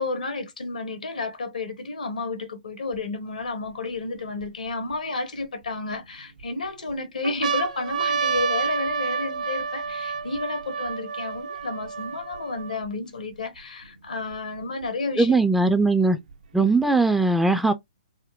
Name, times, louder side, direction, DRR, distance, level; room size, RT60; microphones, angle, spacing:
voice 1, 0.0-15.4, left 3 dB, 90° left, 1.0 m, -31 dB
sound 1, 2.9-3.0 3.7-4.9 5.7-6.4 6.9-7.0 7.2-12.9 13.6-13.7 13.8-14.8 15.8-16.8, right 6 dB, 75° right, 0.5 m, -29 dB
voice 2, 15.2-16.2 16.5-17.7, right 3 dB, 5° right, 0.3 m, -19 dB
3.6 x 2.1 x 2.3 m
hypercardioid pair, 130°, 4 cm